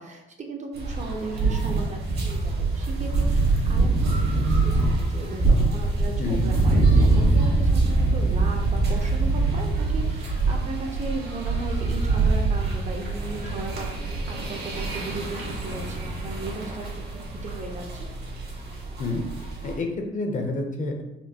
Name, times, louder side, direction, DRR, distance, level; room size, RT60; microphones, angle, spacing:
voice 1, 0.0-16.9 17.3-18.1, right 3 dB, 35° right, 2 dB, 0.6 m, -36 dB
sound 1, 0.7-19.7, right 3 dB, 55° right, 1.2 m, -24 dB
voice 2, 19.6-21.0, left 2 dB, 40° left, 2 dB, 0.6 m, -28 dB
4.3 x 2.3 x 2.8 m, 0.94 s
cardioid pair, 90°, 20 cm